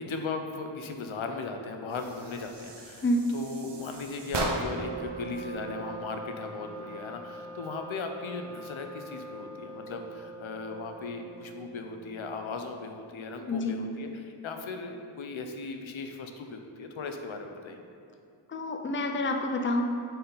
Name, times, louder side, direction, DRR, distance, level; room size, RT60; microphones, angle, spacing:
voice 1, 0.0-3.0 3.3-17.8, left 4 dB, 80° left, 5 dB, 0.7 m, -37 dB
sound 1, 1.9-5.0, right 2 dB, 60° right, 0.9 m, -36 dB
Wind instrument woodwind instrument, 4.2-12.1, right 2 dB, 80° right, 1.7 m, -43 dB
voice 2, 13.5-13.8 18.5-19.8, left 1 dB, 25° left, 4 dB, 0.5 m, -28 dB
8.9 x 4.3 x 3.9 m, 2.6 s
wide cardioid pair, 100°, 47 cm